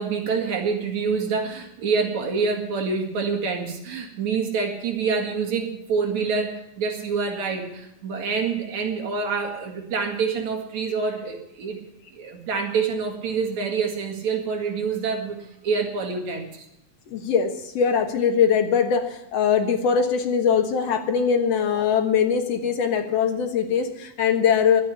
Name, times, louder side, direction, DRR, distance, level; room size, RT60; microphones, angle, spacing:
voice 1, 0.0-11.8 12.1-16.6, right 5 dB, 65° right, 2 dB, 3.4 m, -26 dB
voice 2, 17.1-24.8, left 7 dB, 60° left, 5 dB, 2.4 m, -21 dB
12.0 x 9.4 x 9.9 m, 0.84 s
omnidirectional pair, 3.5 m